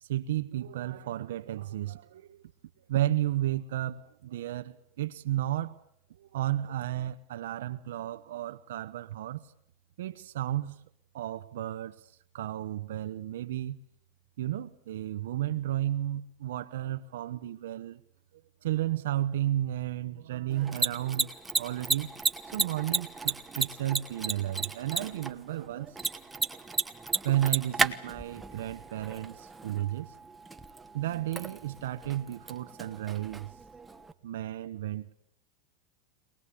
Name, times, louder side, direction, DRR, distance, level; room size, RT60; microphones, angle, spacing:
voice 1, 0.0-2.4 2.9-5.8 6.2-9.5 10.0-10.8 11.1-12.0 12.3-13.8 14.4-18.0 18.6-22.1 22.5-26.0 27.2-30.1 30.9-33.5 34.2-35.1, right 13 dB, 85° right, 0.9 m, -33 dB
Mechanisms, 20.5-34.1, right 3 dB, 10° right, 1.1 m, -34 dB
23.5 x 20.0 x 8.4 m
supercardioid pair, 140°, 0 cm